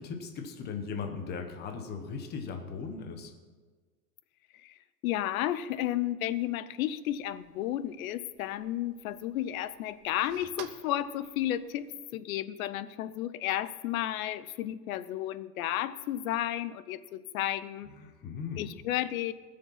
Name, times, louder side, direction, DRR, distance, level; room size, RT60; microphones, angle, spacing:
voice 1, 0.0-3.3 18.0-18.7, left 5 dB, 20° left, 5 dB, 1.1 m, -38 dB
voice 2, 5.0-17.9 18.6-19.3, left 13 dB, 60° left, 15 dB, 0.8 m, -32 dB
sound 1, 7.0-12.0, right 10 dB, 25° right, 0.5 m, -53 dB
19.5 x 6.7 x 5.7 m, 1.4 s
supercardioid pair, 145°, 48 cm